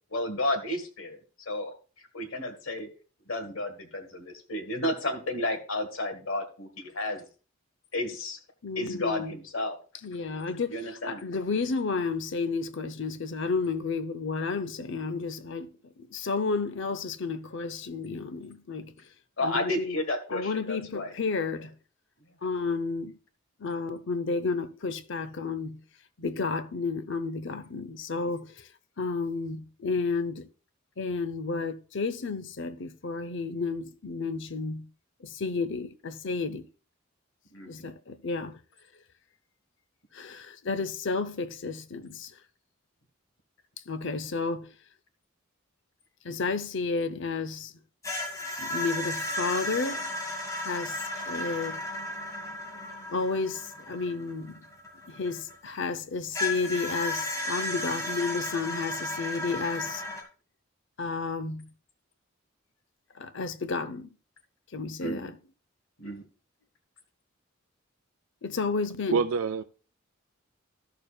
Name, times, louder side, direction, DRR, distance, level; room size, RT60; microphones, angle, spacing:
voice 1, 0.1-1.7 2.1-2.9 3.3-7.2 7.9-8.4 8.7-9.8 10.7-11.2 19.4-21.1 37.5-37.9 65.0-65.3 66.0-66.2, left 1 dB, 90° left, 1.5 m, -32 dB
voice 2, 8.6-9.4 10.0-15.7 16.0-18.9 19.4-20.0 20.3-21.7 22.4-23.1 23.6-25.8 26.2-28.7 29.0-30.5 31.0-34.9 35.2-36.7 37.7-38.6 40.1-42.3 43.9-44.7 46.2-47.7 48.6-50.1 50.6-51.8 53.1-54.7 55.1-60.0 61.0-61.7 63.1-64.1 64.7-65.4 68.4-69.2, left 4 dB, 65° left, 0.7 m, -32 dB
sound 1, 48.0-55.7 56.3-60.2, left 1 dB, 15° left, 1.8 m, -34 dB
voice 3, 69.1-69.6, right 5 dB, 90° right, 0.4 m, -26 dB
13.5 x 6.7 x 2.4 m
head